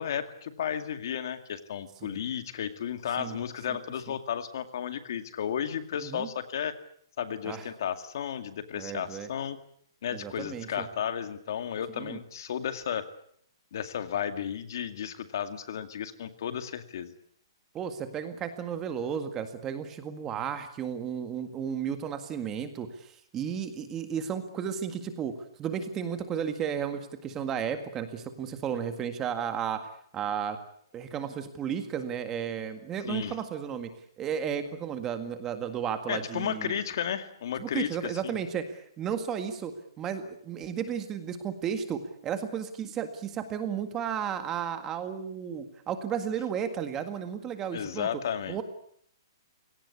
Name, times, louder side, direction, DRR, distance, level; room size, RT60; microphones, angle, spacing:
voice 1, 0.0-6.7 7.2-9.6 10.0-13.1 13.7-17.1 33.1-33.3 36.1-38.3 47.7-48.6, left 8 dB, 55° left, 10 dB, 2.2 m, -33 dB
voice 2, 8.8-9.3 10.1-10.9 11.9-12.2 17.7-25.3 25.6-29.8 30.1-30.6 30.9-33.9 34.2-36.8 37.6-48.1 48.5-48.6, right 8 dB, 15° right, 9 dB, 1.8 m, -33 dB
30.0 x 18.0 x 8.5 m, 0.66 s
hypercardioid pair, 170°, 2 cm